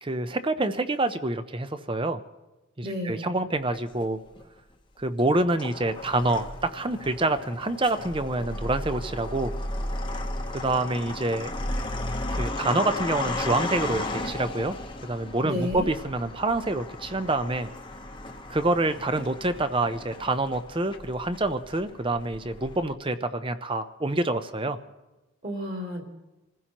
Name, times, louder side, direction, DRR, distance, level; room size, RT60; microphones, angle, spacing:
voice 1, 0.0-2.2 2.8-4.2 5.0-9.5 10.5-11.5 12.3-14.8 15.0-17.7 18.5-24.8, right 2 dB, 25° right, 11 dB, 0.6 m, -27 dB
voice 2, 2.8-3.4 15.4-15.9 25.4-26.0, left 1 dB, 50° right, -1 dB, 3.2 m, -31 dB
sound 1, 3.7-4.4 5.1-22.9, left 1 dB, 20° left, 0.9 m, -35 dB
27.0 x 15.5 x 3.0 m, 1.1 s
head